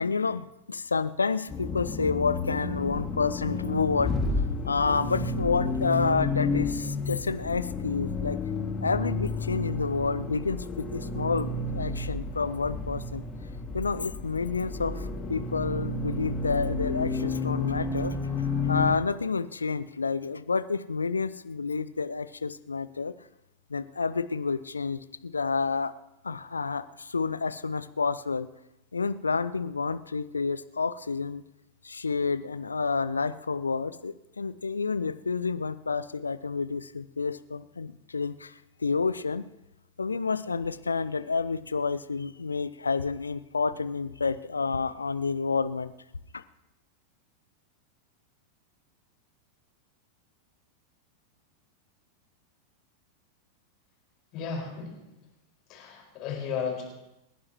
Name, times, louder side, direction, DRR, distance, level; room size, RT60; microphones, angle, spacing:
voice 1, 0.0-4.1 4.6-8.4 8.8-13.2 13.7-23.1 23.7-25.9 26.2-28.5 28.9-31.4 31.8-38.5 38.8-39.5 40.0-45.9 46.3-46.4, left 4 dB, 75° left, 15 dB, 0.5 m, -29 dB
Accelerating revving vroom, 1.5-19.0, left 3 dB, 20° left, 2.3 m, -31 dB
voice 2, 54.3-54.9 55.7-56.8, left 6 dB, 40° left, -1 dB, 5.1 m, -34 dB
29.5 x 11.0 x 3.1 m, 0.92 s
figure-of-eight pair, 90°, 0 cm